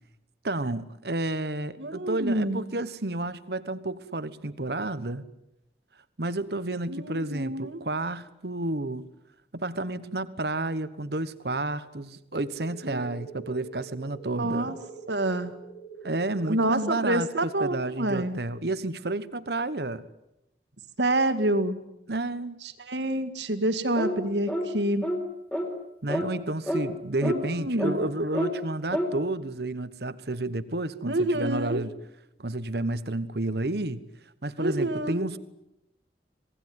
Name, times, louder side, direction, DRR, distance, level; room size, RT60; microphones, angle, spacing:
voice 1, 0.4-5.2 6.2-9.1 9.5-14.7 16.0-20.1 22.1-22.6 26.0-31.9 32.4-34.0 34.4-35.4, right 2 dB, 60° right, 14 dB, 1.2 m, -31 dB
voice 2, 1.8-2.6 6.9-7.8 12.8-13.0 14.4-14.8 15.1-15.5 16.5-18.4 21.0-21.8 22.6-25.1 27.2-28.0 31.1-31.8 34.6-35.3, right 1 dB, 80° right, 11 dB, 2.2 m, -27 dB
sound 1, 12.3-17.3, right 5 dB, 40° left, 6.0 m, -44 dB
sound 2, 24.0-24.2 24.5-24.7 25.0-25.2 25.5-25.7 26.1-26.3 26.7-26.8 27.2-27.4 27.8-27.9 28.3-28.5 28.9-29.1, equal, 10° left, 4.1 m, -28 dB
27.0 x 19.0 x 9.7 m, 0.87 s
head